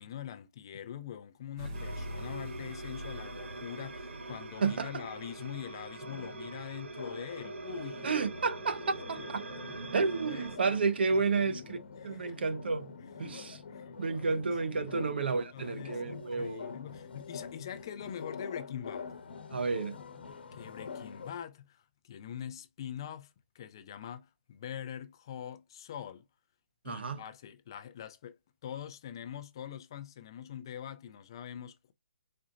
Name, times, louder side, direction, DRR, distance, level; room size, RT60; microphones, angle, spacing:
voice 1, 0.0-8.1 9.1-9.2 10.0-10.8 11.2-12.4 13.0-13.4 13.7-14.4 14.7-19.1 20.5-26.2 26.8-31.9, left 9 dB, 25° left, 0.4 m, -44 dB
sound 1, 1.6-5.1, equal, 25° right, 1.0 m, -44 dB
sound 2, 1.7-10.6, right 3 dB, 90° right, 1.0 m, -43 dB
sound 3, 6.0-21.3, left 5 dB, 60° left, 1.0 m, -46 dB
voice 2, 8.0-9.4 9.9-11.8 12.0-12.9 13.2-13.6 14.0-16.7 19.5-20.0 26.8-27.2, right 4 dB, 65° right, 0.8 m, -31 dB
4.9 x 4.3 x 2.5 m
hypercardioid pair, 175°, 6 cm